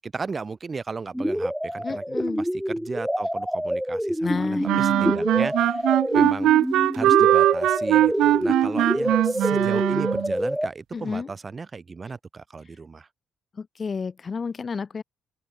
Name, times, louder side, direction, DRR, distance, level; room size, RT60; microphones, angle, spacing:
voice 1, 0.0-2.0 2.4-5.9 6.1-6.5 6.9-13.1, right 4 dB, 35° right, 4.3 m, -36 dB
sound 1, 1.1-10.7, equal, ahead, 0.9 m, -27 dB
voice 2, 1.8-2.4 4.2-5.3 10.9-11.3 13.6-15.0, left 5 dB, 40° left, 2.0 m, -31 dB
sound 2, 4.6-10.3, right 14 dB, 85° right, 1.3 m, -20 dB
open air
cardioid pair, 90°, 0 cm